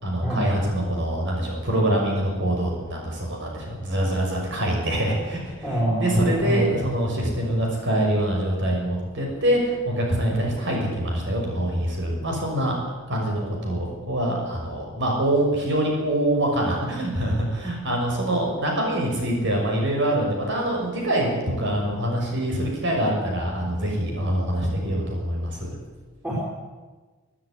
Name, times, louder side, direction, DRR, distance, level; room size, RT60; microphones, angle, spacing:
voice 1, 0.0-12.8 13.1-25.7, right 1 dB, 60° right, 0 dB, 6.3 m, -25 dB
voice 2, 5.6-6.7 26.2-26.5, right 1 dB, 10° right, -5 dB, 5.4 m, -25 dB
24.0 x 11.0 x 9.9 m, 1.3 s
head